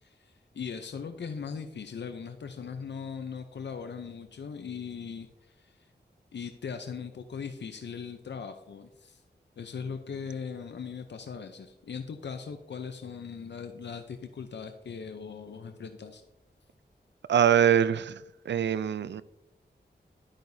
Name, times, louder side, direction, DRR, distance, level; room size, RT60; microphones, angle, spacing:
voice 1, 0.0-5.8 6.3-9.2 9.6-16.2, left 6 dB, 85° left, 0.6 m, -39 dB
voice 2, 17.3-18.2 18.5-19.2, right 9 dB, 90° right, 0.4 m, -23 dB
11.5 x 8.9 x 2.7 m
wide cardioid pair, 90°, 18 cm